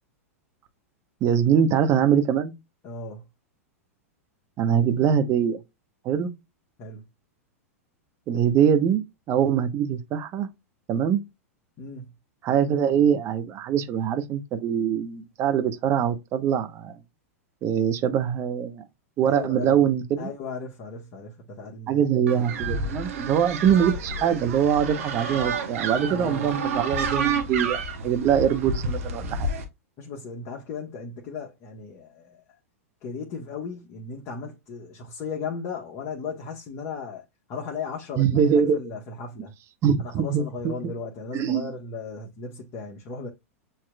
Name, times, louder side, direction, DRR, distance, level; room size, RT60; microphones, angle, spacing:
voice 1, 1.2-2.5 4.6-5.6 6.0-6.3 8.3-10.5 10.9-11.2 12.4-16.9 17.6-18.8 19.2-20.3 21.9-29.5 38.2-38.8 39.8-40.7 41.3-41.7, right 8 dB, 35° right, 0.9 m, -23 dB
voice 2, 2.8-3.2 6.8-7.0 11.8-12.0 19.2-19.8 20.2-22.0 26.1-26.5 30.0-32.4 33.0-39.5 40.0-43.3, left 4 dB, 40° left, 1.2 m, -36 dB
sound 1, 22.3-29.6, right 4 dB, 65° right, 1.2 m, -29 dB
7.9 x 3.0 x 2.2 m
hypercardioid pair, 100°, 8 cm